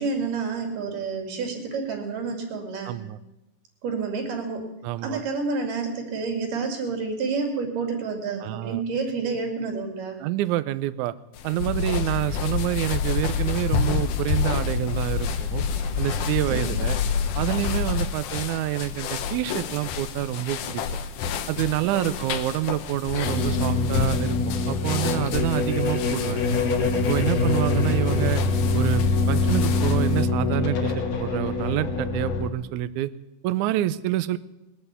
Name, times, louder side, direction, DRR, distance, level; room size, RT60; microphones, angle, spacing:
voice 1, 0.0-2.9 3.8-4.7 5.0-10.2 16.5-16.8 21.8-22.1, right 4 dB, 65° right, 2 dB, 4.0 m, -29 dB
voice 2, 2.9-3.2 4.8-5.2 8.4-8.8 10.2-11.1 11.4-15.6 16.0-17.0 17.4-20.8 21.5-26.4 27.1-28.4 28.7-33.1 33.4-34.4, right 14 dB, 80° right, 15 dB, 1.7 m, -27 dB
sound 1, 11.3-30.3, left 7 dB, 70° left, 2.3 m, -32 dB
sound 2, 11.6-18.1, left 6 dB, 85° left, 2.8 m, -27 dB
sound 3, 23.2-32.5, left 3 dB, 50° left, 2.5 m, -24 dB
20.5 x 7.9 x 8.2 m, 0.96 s
omnidirectional pair, 4.1 m